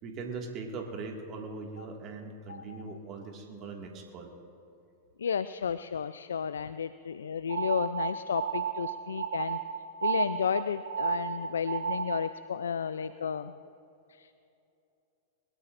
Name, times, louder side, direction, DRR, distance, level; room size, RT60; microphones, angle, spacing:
voice 1, 0.0-4.3, right 4 dB, 40° right, 1 dB, 1.9 m, -40 dB
voice 2, 5.2-9.6 10.0-13.6 14.1-14.3, left 7 dB, 75° left, 14 dB, 0.3 m, -33 dB
sound 1, 7.5-12.4, right 7 dB, 75° right, 1.0 m, -33 dB
21.5 x 21.5 x 2.5 m, 2.8 s
hypercardioid pair, 100°, 0 cm